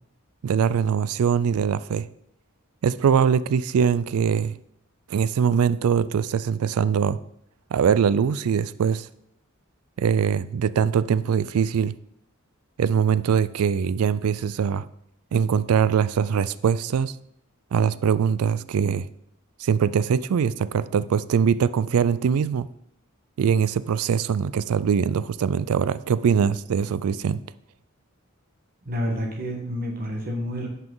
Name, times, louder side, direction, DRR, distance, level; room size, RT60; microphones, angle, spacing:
voice 1, 0.4-2.1 2.8-4.5 5.1-7.2 7.7-9.1 10.0-11.9 12.8-14.8 15.3-17.1 17.7-19.1 19.6-22.7 23.4-27.4, right 7 dB, 85° right, 0.4 m, -22 dB
voice 2, 28.8-30.7, equal, 45° right, 1.4 m, -29 dB
10.5 x 5.7 x 3.9 m
head